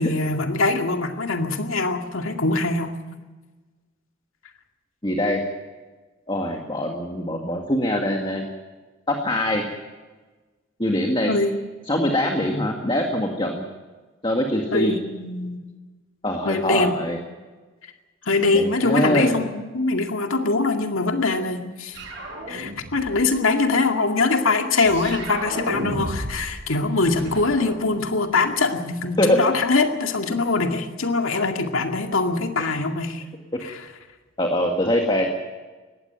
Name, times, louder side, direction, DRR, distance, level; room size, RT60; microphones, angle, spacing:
voice 1, 0.0-3.0 11.3-11.6 14.7-15.6 16.4-17.0 18.2-22.0 22.5-33.2 33.6-33.9, left 3 dB, 80° left, 4 dB, 2.3 m, -23 dB
voice 2, 5.0-5.4 6.3-8.5 9.1-9.6 10.8-11.3 11.9-13.6 14.2-14.9 16.2-17.2 18.5-19.3 29.2-29.4 34.4-35.3, left 1 dB, 25° left, 2 dB, 1.9 m, -23 dB
sound 1, 21.9-23.3 24.9-26.5 26.8-28.4, equal, 55° right, 7.9 m, -32 dB
19.5 x 16.0 x 9.3 m, 1.3 s
head